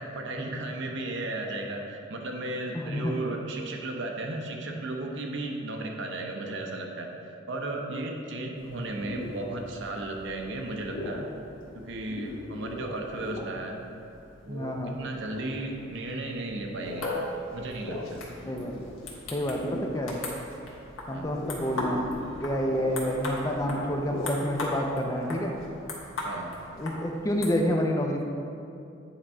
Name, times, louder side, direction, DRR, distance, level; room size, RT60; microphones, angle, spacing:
voice 1, 0.0-11.3 11.7-13.8 14.4-17.1 17.5-18.2 21.1-21.3 26.2-26.6, right 2 dB, 65° right, 2 dB, 0.7 m, -35 dB
voice 2, 2.7-3.2 14.5-15.0 18.5-18.7 19.3-20.2 21.1-22.1 22.4-25.6 26.7-28.2, equal, 15° left, 1 dB, 0.4 m, -28 dB
sound 1, 8.6-24.7, left 1 dB, 65° left, 1.1 m, -41 dB
sound 2, 16.8-27.6, left 2 dB, 90° left, 1.2 m, -38 dB
8.7 x 3.6 x 4.3 m, 2.6 s
head